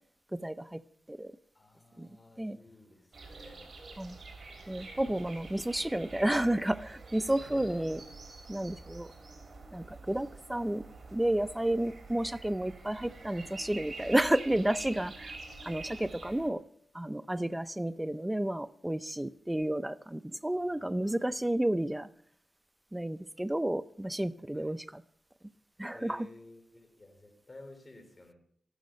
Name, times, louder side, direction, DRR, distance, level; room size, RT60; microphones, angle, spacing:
voice 1, 0.3-0.8 1.1-1.3 2.0-2.1 2.4-2.6 4.0-4.2 4.7-8.0 8.5-9.1 9.7-10.8 11.1-15.4 15.6-16.6 16.9-22.1 22.9-25.0 25.8-26.3, right 1 dB, 10° right, 0.5 m, -31 dB
voice 2, 1.5-3.7 4.7-4.8 7.4-8.0 20.5-21.3 24.5-24.8 25.9-28.3, left 2 dB, 35° left, 3.8 m, -53 dB
sound 1, 3.1-16.5, right 3 dB, 45° right, 3.6 m, -47 dB
14.5 x 12.0 x 5.2 m
cardioid pair, 75°, 0 cm